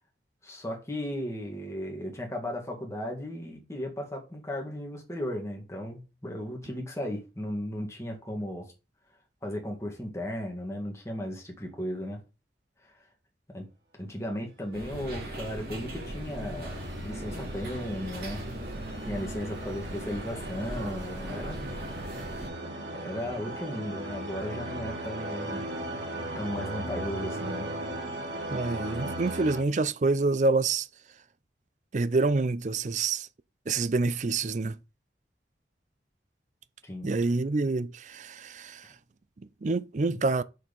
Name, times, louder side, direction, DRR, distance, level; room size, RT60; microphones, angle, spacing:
voice 1, 0.4-8.7 9.4-12.2 12.8-12.9 13.5-13.7 13.9-18.4 19.1-21.7 22.2-22.4 23.0-25.6 26.4-27.7 36.8-37.1 40.1-40.2, left 1 dB, 15° left, 2.0 m, -36 dB
sound 1, 14.7-22.5, right 1 dB, 60° right, 3.0 m, -39 dB
sound 2, 15.3-29.6, right 1 dB, 80° right, 2.3 m, -38 dB
voice 2, 28.5-30.9 31.9-33.3 33.7-34.8 37.0-38.9 39.6-40.4, right 3 dB, 45° right, 0.4 m, -27 dB
6.4 x 4.6 x 5.4 m
head